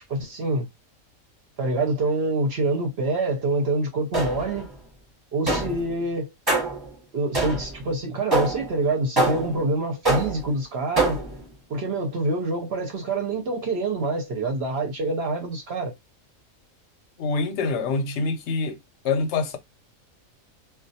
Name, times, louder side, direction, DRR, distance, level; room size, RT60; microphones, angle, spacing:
voice 1, 0.1-0.7 1.6-4.7 5.3-6.3 7.1-11.2 11.7-15.9, right 2 dB, 60° right, 0.7 m, -26 dB
sound 1, 4.1-4.6 5.5-5.9 6.5-6.9 7.3-7.8 8.3-8.7 9.2-9.6 10.1-10.5 11.0-11.4, right 2 dB, 20° right, 0.8 m, -24 dB
voice 2, 17.2-18.8 19.0-19.6, left 4 dB, 65° left, 0.8 m, -25 dB
2.3 x 2.2 x 2.6 m
omnidirectional pair, 1.5 m